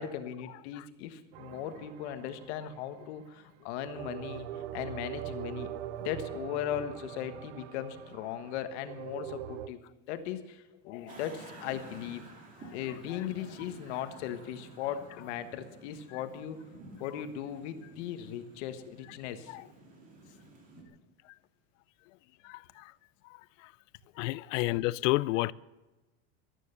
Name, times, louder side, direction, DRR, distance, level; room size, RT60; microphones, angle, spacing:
voice 1, 0.0-5.7 6.0-9.8 10.1-12.2 12.7-16.6 17.0-19.6, left 10 dB, 65° left, 1.5 m, -38 dB
sound 1, 1.3-3.0 3.8-9.7, right 11 dB, 70° right, 0.8 m, -42 dB
sound 2, 11.1-20.8, right 2 dB, 20° right, 2.5 m, -52 dB
voice 2, 22.4-22.9 24.2-25.5, left 20 dB, 90° left, 0.5 m, -30 dB
14.5 x 12.5 x 6.8 m
cardioid pair, 175°, 36 cm